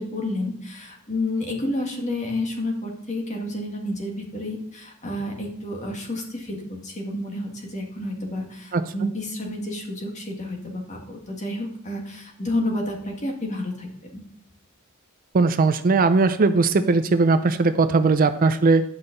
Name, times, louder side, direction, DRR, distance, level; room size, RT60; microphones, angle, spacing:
voice 1, 0.0-14.2, left 1 dB, 35° left, 1 dB, 1.8 m, -30 dB
voice 2, 15.3-18.8, right 3 dB, 40° right, 11 dB, 0.5 m, -19 dB
9.7 x 5.6 x 3.9 m, 0.71 s
head